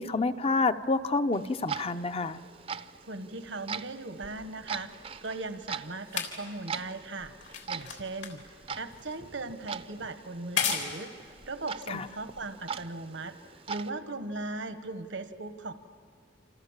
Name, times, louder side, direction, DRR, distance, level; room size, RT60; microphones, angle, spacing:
voice 1, 0.0-2.4 11.9-12.1, left 3 dB, 30° left, 11 dB, 0.7 m, -28 dB
Clock, 1.3-13.9, right 6 dB, 30° right, 0.6 m, -42 dB
voice 2, 3.0-7.3 7.7-8.4 8.8-13.3 13.7-15.7, right 2 dB, 80° right, 9 dB, 1.2 m, -38 dB
sound 1, 4.2-12.8 13.7-13.8, left 7 dB, 75° left, 3.7 m, -38 dB
28.5 x 27.5 x 7.4 m, 2.1 s
head